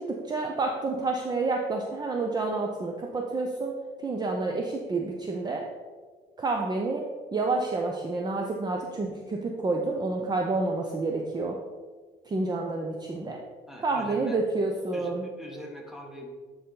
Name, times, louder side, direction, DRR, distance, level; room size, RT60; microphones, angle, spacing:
voice 1, 0.0-5.7 6.4-11.6 12.3-13.4 13.8-15.3, right 3 dB, 25° right, 1 dB, 0.6 m, -29 dB
voice 2, 13.7-14.4 14.9-16.3, equal, ahead, 1 dB, 1.3 m, -42 dB
9.0 x 4.1 x 3.9 m, 1.5 s
cardioid pair, 110°, 17 cm